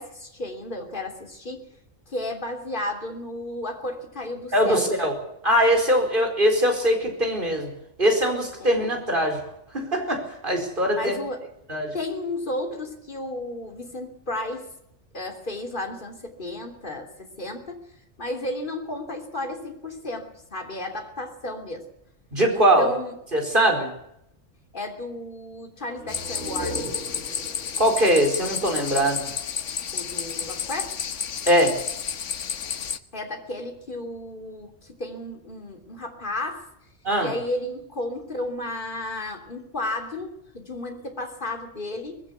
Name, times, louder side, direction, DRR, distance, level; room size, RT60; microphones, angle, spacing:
voice 1, 0.0-1.6 2.1-4.9 8.6-8.7 10.9-11.5 11.9-14.7 15.1-17.9 18.2-21.9 22.5-23.1 24.7-26.8 29.9-31.1 33.1-36.6 37.2-42.2, left 1 dB, 40° left, 3 dB, 3.3 m, -33 dB
voice 2, 4.5-5.1 5.4-7.7 8.0-9.4 9.7-11.2 11.7-11.9 22.3-22.9 23.3-23.9 27.8-29.3 31.5-31.8 37.0-37.3, equal, 40° right, 3 dB, 4.9 m, -21 dB
sound 1, 25.9-29.4, right 1 dB, 70° right, 2.8 m, -38 dB
sound 2, 26.1-33.0, left 7 dB, 75° left, 1.3 m, -31 dB
20.5 x 16.0 x 8.2 m, 0.77 s
omnidirectional pair, 1.3 m